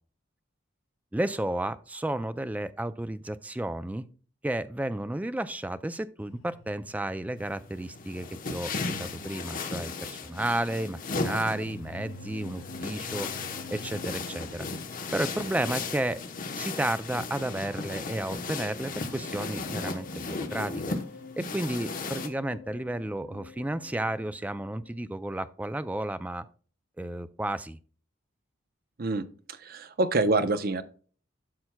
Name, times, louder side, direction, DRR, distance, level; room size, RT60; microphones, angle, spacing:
voice 1, 1.1-4.1 4.4-13.3 13.7-14.7 15.1-16.2 16.5-21.0 21.4-26.5 27.0-27.8, right 1 dB, 10° right, 13 dB, 0.3 m, -32 dB
sound 1, 6.2-25.0, left 3 dB, 80° left, 0.8 m, -48 dB
sound 2, 7.4-22.3, left 3 dB, 45° left, 0.9 m, -36 dB
voice 2, 29.0-30.8, right 2 dB, 50° right, 11 dB, 0.6 m, -27 dB
12.0 x 5.8 x 2.2 m, 0.40 s
head